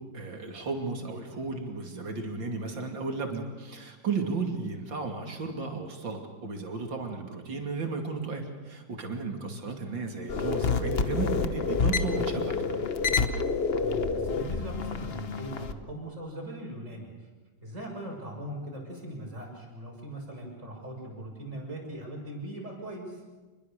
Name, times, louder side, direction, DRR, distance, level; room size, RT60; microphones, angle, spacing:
voice 1, 0.0-12.8, right 4 dB, 75° right, 3 dB, 3.4 m, -34 dB
voice 2, 9.5-10.0 13.8-17.3 17.6-23.2, right 1 dB, 40° right, 0 dB, 6.7 m, -40 dB
sound 1, 10.3-15.7, left 5 dB, 40° left, 1.0 m, -28 dB
27.0 x 21.5 x 6.7 m, 1.3 s
omnidirectional pair, 2.1 m